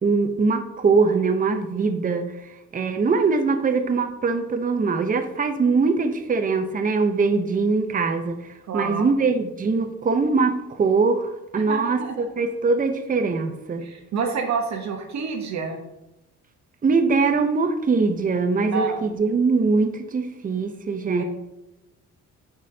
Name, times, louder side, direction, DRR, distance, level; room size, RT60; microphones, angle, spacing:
voice 1, 0.0-2.3 2.7-8.4 8.7-13.9 16.8-21.2, right 4 dB, 30° right, 7 dB, 0.7 m, -22 dB
voice 2, 8.6-9.0 11.7-12.3 13.8-15.8 18.7-19.0 21.2-21.3, right 5 dB, 65° right, 3 dB, 1.1 m, -28 dB
8.4 x 5.1 x 2.8 m, 0.95 s
cardioid pair, 90°, 30 cm